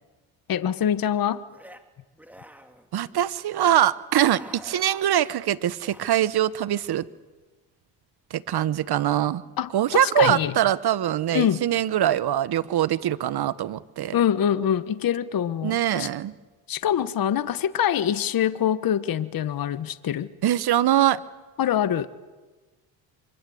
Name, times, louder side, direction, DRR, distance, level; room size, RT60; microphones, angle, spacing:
voice 1, 0.5-1.4 9.6-10.5 11.3-11.6 14.1-16.1 16.7-20.3 21.6-22.1, left 9 dB, 50° left, 14 dB, 1.2 m, -24 dB
sound 1, 1.5-1.8 2.1-2.9 3.5-3.9 4.2-5.3 5.8-6.1, right 1 dB, 5° right, 2.5 m, -47 dB
voice 2, 2.9-7.1 8.3-9.4 9.7-14.2 15.6-16.3 20.4-21.2, right 11 dB, 55° right, 16 dB, 1.2 m, -23 dB
24.5 x 24.0 x 7.9 m, 1.3 s
supercardioid pair, 75°, 46 cm